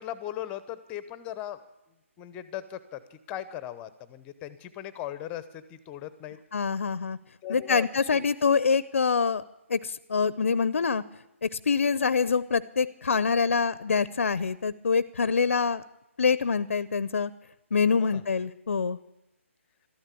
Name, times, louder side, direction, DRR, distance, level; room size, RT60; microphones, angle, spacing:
voice 1, 0.0-1.6 2.2-6.4 7.4-8.3 18.0-18.2, left 12 dB, 15° left, 14 dB, 0.8 m, -38 dB
voice 2, 6.5-7.2 7.5-9.4 9.7-11.0 11.4-15.8 16.2-17.3 17.7-19.0, left 5 dB, 70° left, 18 dB, 0.6 m, -25 dB
13.0 x 12.5 x 8.4 m, 0.91 s
figure-of-eight pair, 150°, 7 cm